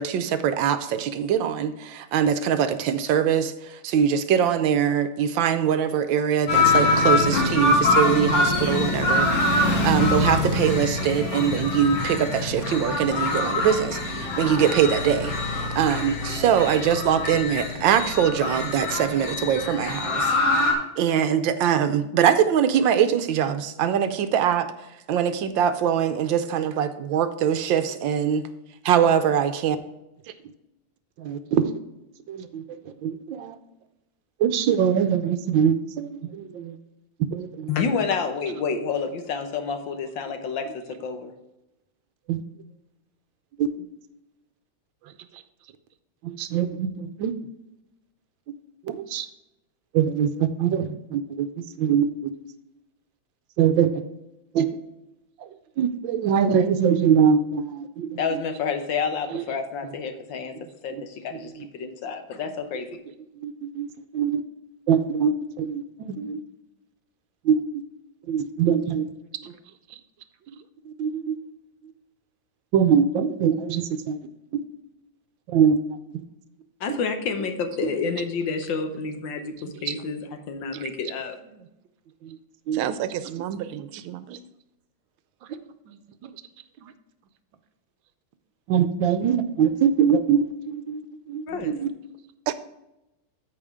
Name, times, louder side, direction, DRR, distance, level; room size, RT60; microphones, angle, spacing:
voice 1, 0.0-20.3 21.0-28.4 28.8-29.8 31.2-31.7 32.3-33.6 34.4-36.8 37.3-37.7 42.3-42.4 43.6-43.7 46.2-47.3 48.8-49.3 49.9-52.3 53.6-54.0 54.5-54.7 55.4-55.5 55.8-58.4 59.3-59.4 61.4-61.7 63.4-64.4 64.9-66.4 67.4-67.8 68.3-69.1 69.4-69.5 70.8-71.4 72.7-74.2 74.5-74.6 75.5-76.2 76.9-77.0 79.9-80.0 82.2-82.4 82.7-82.8 85.9-86.0 86.2-86.3 86.8-86.9 88.7-91.0 91.3-91.9, right 8 dB, 70° right, 10 dB, 1.3 m, -23 dB
sound 1, 6.5-20.7, left 2 dB, 45° left, 1.8 m, -24 dB
voice 2, 37.7-41.3 58.2-62.9 76.8-80.2 80.5-81.3 91.5-91.7, left 5 dB, 70° left, 7 dB, 1.6 m, -29 dB
voice 3, 82.7-84.4 92.5-92.6, right 11 dB, 90° right, 12 dB, 1.5 m, -31 dB
13.5 x 5.1 x 3.6 m, 0.92 s
omnidirectional pair, 2.3 m